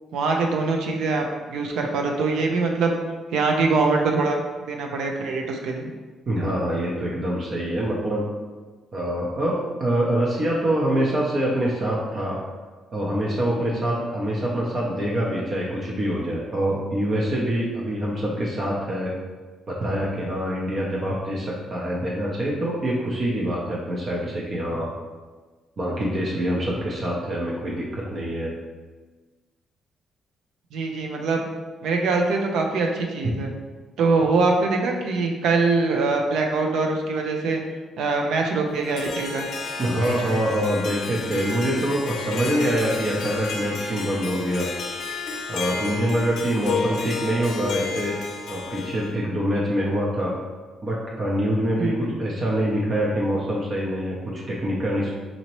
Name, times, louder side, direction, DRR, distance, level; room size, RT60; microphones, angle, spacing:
voice 1, 0.1-2.9 3.3-5.9 30.7-31.5 31.8-33.5 34.0-37.6 38.0-39.5 40.0-40.4 51.8-52.1, right 3 dB, 80° right, 2 dB, 0.5 m, -23 dB
voice 2, 6.3-8.2 8.9-12.4 12.9-19.1 19.7-24.9 25.8-28.5 39.8-44.7 45.5-48.2 48.5-50.3 50.8-55.1, right 1 dB, 45° right, -4 dB, 0.7 m, -25 dB
Harp, 38.7-49.2, left 5 dB, 70° left, 0.5 m, -32 dB
4.0 x 2.8 x 3.0 m, 1.3 s
cardioid pair, 90°, 0 cm